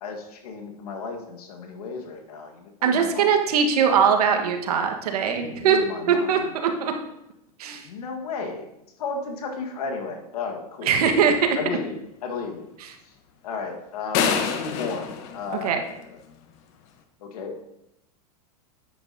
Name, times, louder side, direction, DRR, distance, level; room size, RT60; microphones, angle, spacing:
voice 1, 0.0-3.4 5.2-6.5 7.7-8.6 9.0-10.9 11.5-12.7 13.0-13.1 13.4-16.2 17.2-17.6, left 4 dB, 80° left, 3 dB, 1.6 m, -34 dB
voice 2, 2.8-5.8 6.1-6.9 7.6-7.9 10.8-11.6 15.6-15.8, right 7 dB, 80° right, 5 dB, 1.5 m, -21 dB
sound 1, 14.1-16.3, left 7 dB, 50° left, 1.0 m, -27 dB
10.0 x 8.6 x 2.8 m, 0.83 s
supercardioid pair, 130°, 19 cm